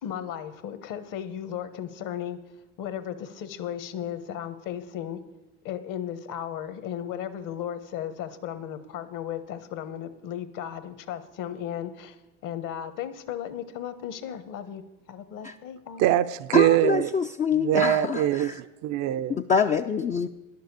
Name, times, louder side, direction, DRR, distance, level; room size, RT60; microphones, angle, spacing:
voice 1, 0.0-2.4 2.8-5.2 5.6-12.2 12.4-14.8 15.1-16.1, left 10 dB, 55° left, 1.2 m, -35 dB
voice 2, 16.0-17.1 17.5-19.3, right 12 dB, 45° right, 0.5 m, -23 dB
voice 3, 16.5-18.6 19.3-20.3, left 6 dB, 20° left, 0.3 m, -25 dB
10.5 x 6.7 x 8.2 m
hypercardioid pair, 80°, 39 cm